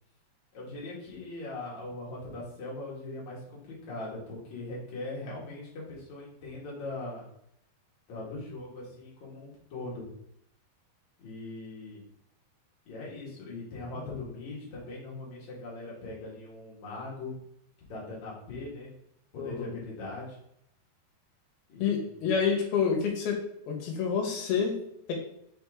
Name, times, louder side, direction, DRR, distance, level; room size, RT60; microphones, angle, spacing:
voice 1, 0.5-7.3 8.1-10.1 11.2-12.1 12.9-17.3 17.9-18.9 19.3-20.4 21.7-22.4, left 2 dB, 55° left, -5 dB, 2.5 m, -40 dB
voice 2, 19.4-19.7 21.8-23.4 23.7-24.7 25.1-25.2, left 6 dB, 70° left, 0 dB, 3.0 m, -28 dB
6.2 x 4.4 x 3.6 m, 0.73 s
omnidirectional pair, 4.8 m